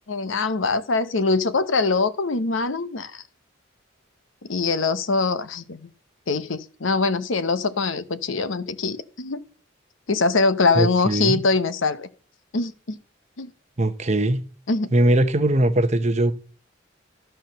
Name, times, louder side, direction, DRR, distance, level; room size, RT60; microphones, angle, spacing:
voice 1, 0.1-3.2 4.5-5.8 6.3-9.4 10.1-12.1 12.5-13.0 13.4-13.5 14.7-14.9, left 3 dB, 85° left, 0.9 m, -23 dB
voice 2, 10.7-11.4 13.8-14.4 14.9-16.3, right 1 dB, 35° right, 0.8 m, -20 dB
12.5 x 4.4 x 6.6 m
head